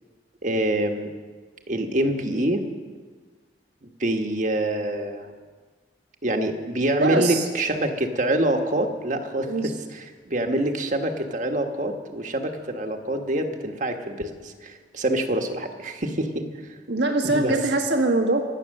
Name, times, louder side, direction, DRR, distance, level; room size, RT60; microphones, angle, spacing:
voice 1, 0.4-1.1 1.7-2.6 3.8-5.3 6.2-16.5 17.2-17.6, right 1 dB, 45° right, 4 dB, 1.4 m, -26 dB
voice 2, 7.0-7.4 9.4-9.7 16.9-18.4, right 2 dB, 85° right, 3 dB, 1.5 m, -22 dB
24.5 x 8.5 x 6.6 m, 1.5 s
head